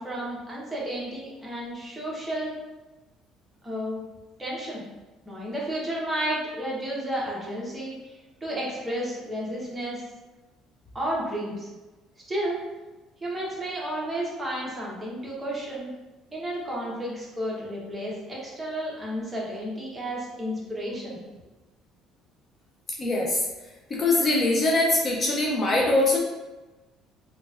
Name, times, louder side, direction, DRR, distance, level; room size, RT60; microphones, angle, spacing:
voice 1, 0.0-2.5 3.6-4.0 4.4-4.8 5.3-8.1 8.4-10.0 10.9-11.7 12.3-12.7 13.2-15.9 16.3-21.2, right 1 dB, 15° right, -5 dB, 1.0 m, -32 dB
voice 2, 23.0-23.4 23.9-26.2, left 2 dB, 35° left, -2 dB, 0.5 m, -22 dB
3.9 x 2.4 x 2.4 m, 1.1 s
cardioid pair, 130°, 0 cm